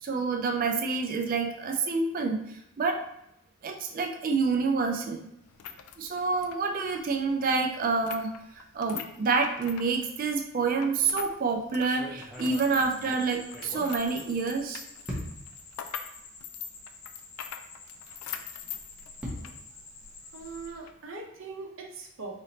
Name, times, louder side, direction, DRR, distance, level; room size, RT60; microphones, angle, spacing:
voice 1, 0.0-2.4 2.8-3.0 3.6-5.2 6.0-14.8, right 4 dB, 40° right, 4 dB, 0.3 m, -28 dB
sound 1, 5.4-11.4 11.6-19.6 19.9-20.0 20.7-20.9, left 8 dB, 80° left, 0.4 m, -43 dB
sound 2, 11.0-11.3 11.8-14.6 15.1-15.6 16.3-16.4 16.8-16.9 18.5-20.8, equal, 5° right, 0.9 m, -42 dB
sound 3, 12.3-20.7, left 4 dB, 50° left, 0.7 m, -49 dB
voice 2, 20.3-22.4, right 4 dB, 60° right, 1 dB, 0.7 m, -41 dB
4.0 x 3.3 x 2.8 m, 0.79 s
head